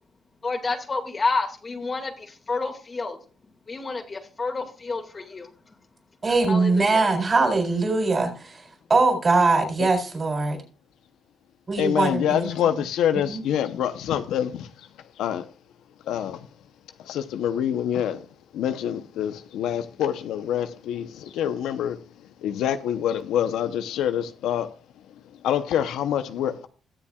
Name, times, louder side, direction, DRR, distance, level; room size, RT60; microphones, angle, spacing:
voice 1, 0.4-3.2 3.7-5.5 6.5-7.1, left 3 dB, 35° left, 2.1 m, -29 dB
voice 2, 6.2-10.6 11.7-12.5 13.3-13.4, right 3 dB, 35° right, 4.0 m, -22 dB
voice 3, 11.8-14.7 15.2-15.4 16.1-16.4 17.0-18.2 18.5-22.0 22.4-24.7 25.4-26.7, left 10 dB, 85° left, 0.8 m, -26 dB
21.0 x 7.2 x 2.4 m
cardioid pair, 90°, 0 cm